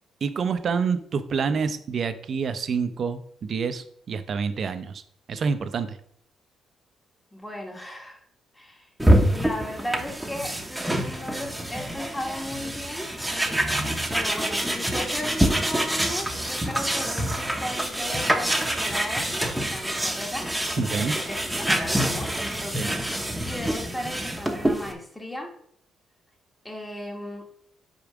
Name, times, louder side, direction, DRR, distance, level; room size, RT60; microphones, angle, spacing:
voice 1, 0.2-5.0 5.3-6.0 20.8-21.2 22.7-22.9, right 5 dB, 55° right, 10 dB, 0.6 m, -27 dB
voice 2, 7.3-8.2 8.5-8.9 9.3-13.1 14.1-20.5 21.0-25.5 26.6-27.5, left 1 dB, 10° left, 1 dB, 1.4 m, -36 dB
sound 1, 9.0-24.9, right 1 dB, 5° right, 1.1 m, -26 dB
5.2 x 4.6 x 6.0 m, 0.65 s
cardioid pair, 90°, 0 cm